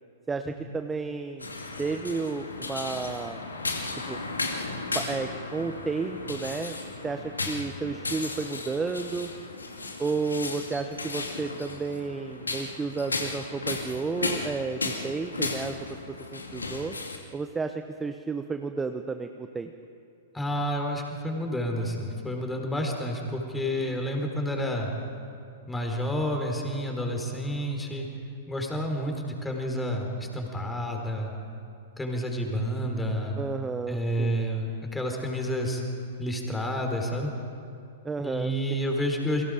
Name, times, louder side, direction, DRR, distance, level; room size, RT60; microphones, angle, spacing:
voice 1, 0.3-1.5 1.8-3.4 4.1-4.2 4.9-6.8 7.0-9.3 10.0-15.8 16.3-16.9 17.3-19.7 33.4-34.4 38.0-38.5, right 4 dB, 15° right, 7 dB, 0.9 m, -32 dB
sound 1, 1.4-17.2, left 3 dB, 85° left, 2.4 m, -35 dB
voice 2, 20.3-24.9 25.7-28.1 28.5-31.3 32.0-33.4 33.9-35.8 36.2-37.3 38.2-39.4, equal, 10° left, 2 dB, 4.3 m, -30 dB
30.0 x 23.0 x 5.1 m, 2.5 s
figure-of-eight pair, 105°, 0 cm